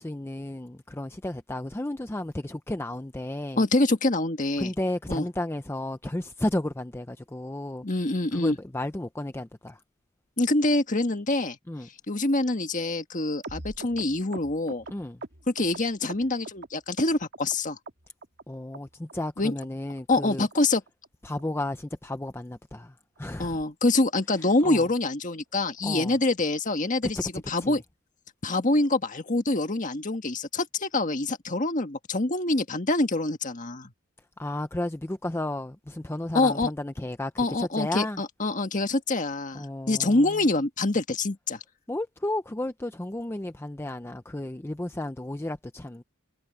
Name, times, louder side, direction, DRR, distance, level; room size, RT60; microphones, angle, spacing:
voice 1, 0.0-3.6 4.6-7.8 8.3-9.8 11.7-11.9 14.9-15.2 18.5-20.5 21.2-23.6 24.4-24.9 25.8-26.2 27.0-27.3 27.6-27.8 34.4-38.2 39.5-40.4 41.9-46.0, left 1 dB, 10° left, 0.5 m, -33 dB
voice 2, 3.6-4.7 5.1-5.3 7.8-8.6 10.4-11.6 12.1-14.8 15.5-17.8 19.4-19.5 20.1-20.8 23.4-27.2 27.5-27.8 28.4-33.9 36.3-36.7 37.4-41.6, left 2 dB, 35° left, 1.6 m, -25 dB
sound 1, 13.4-16.7 17.0-17.6 17.9-18.4 18.7-18.8 19.1-19.3 19.6-19.7 20.0-20.2 20.5-20.6 20.9-21.1 21.4-21.5 21.7-21.9 22.3-22.4 22.6-22.8 23.2-23.3, right 2 dB, 50° right, 2.6 m, -42 dB
head